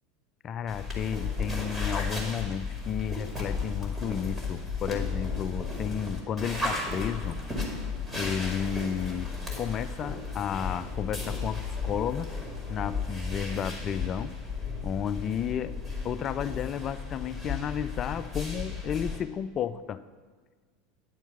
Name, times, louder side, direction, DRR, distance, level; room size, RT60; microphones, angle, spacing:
voice 1, 0.4-7.4 8.1-12.3 12.7-14.3 14.8-15.8 16.0-20.0, left 8 dB, 35° left, 14 dB, 0.4 m, -32 dB
sound 1, 0.7-19.2, left 4 dB, 10° right, 2.2 m, -34 dB
9.9 x 4.5 x 7.1 m, 1.5 s
figure-of-eight pair, 80°, 0 cm